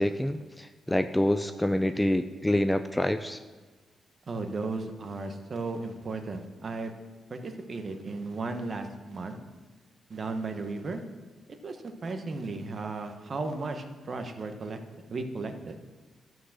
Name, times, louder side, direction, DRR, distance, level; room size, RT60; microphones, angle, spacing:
voice 1, 0.0-3.4, left 1 dB, 10° left, 10 dB, 0.4 m, -27 dB
voice 2, 4.3-6.9 7.3-9.4 10.1-11.0 11.6-14.8 15.1-15.8, right 3 dB, 40° right, 6 dB, 1.2 m, -35 dB
11.0 x 6.1 x 7.4 m, 1.3 s
cardioid pair, 110°, 0 cm